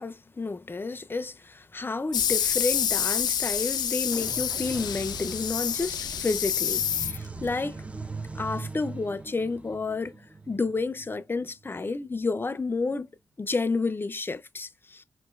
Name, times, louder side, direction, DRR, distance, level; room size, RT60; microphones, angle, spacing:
voice 1, 0.0-7.8 8.3-10.2 10.5-13.1 13.4-15.0, left 3 dB, 30° left, 0.5 m, -30 dB
sound 1, 2.1-7.5, left 9 dB, 85° left, 0.4 m, -28 dB
sound 2, 4.1-11.7, right 3 dB, 15° right, 0.6 m, -41 dB
5.0 x 3.0 x 2.3 m
cardioid pair, 60°, 7 cm